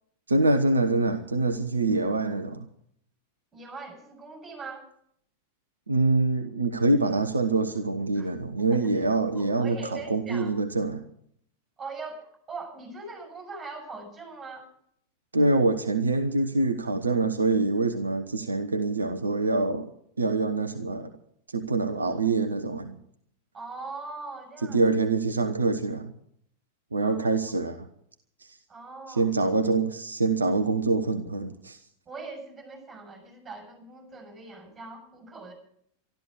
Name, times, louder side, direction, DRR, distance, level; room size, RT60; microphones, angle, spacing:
voice 1, 0.3-2.7 5.9-11.0 15.3-19.9 20.2-21.1 21.5-23.0 24.7-26.1 26.9-27.9 29.1-31.8, right 3 dB, 75° right, 8 dB, 0.9 m, -25 dB
voice 2, 3.5-4.9 8.2-8.3 8.6-8.8 9.3-10.5 11.8-14.7 23.5-24.8 27.0-27.4 28.7-29.3 32.1-35.5, right 3 dB, 20° right, 2 dB, 7.3 m, -41 dB
13.0 x 12.5 x 7.7 m, 0.69 s
figure-of-eight pair, 90°, 0 cm